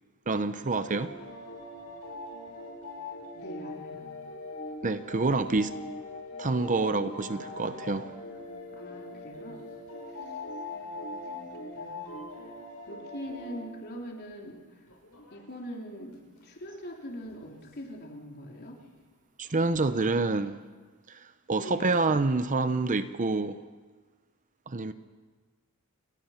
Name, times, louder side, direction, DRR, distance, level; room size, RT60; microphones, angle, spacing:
voice 1, 0.3-1.1 4.8-5.7 6.4-8.1 19.4-20.6 21.1-21.2 21.5-23.6 24.7-24.9, right 3 dB, 35° right, 0.7 m, -27 dB
sound 1, 0.6-13.7 14.0-14.1 14.4-14.5 14.9-15.4 16.1-17.7 18.5-18.9 19.5-19.9 20.2-20.4, left 2 dB, 75° left, 7.1 m, -42 dB
voice 2, 3.3-4.1 7.3-9.7 10.3-10.4 10.7-12.1 12.9-14.6 15.3-16.2 16.4-18.8 21.6-22.0 24.8-24.9, equal, 45° left, 3.5 m, -43 dB
29.0 x 20.0 x 5.8 m
head